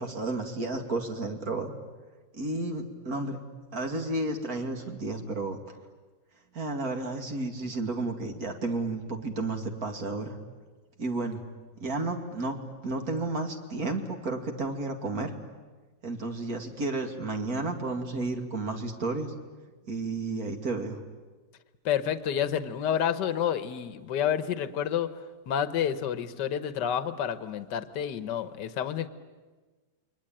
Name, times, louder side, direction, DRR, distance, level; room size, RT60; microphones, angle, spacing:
voice 1, 0.0-1.7 2.3-3.4 3.7-5.8 6.5-10.4 11.0-11.4 11.8-12.6 12.8-15.3 16.0-19.3 19.9-21.0, right 2 dB, 50° right, 4 dB, 2.8 m, -32 dB
voice 2, 21.8-25.1 25.5-29.1, left 9 dB, 70° left, 12 dB, 1.7 m, -29 dB
29.0 x 23.0 x 8.9 m, 1.3 s
omnidirectional pair, 2.0 m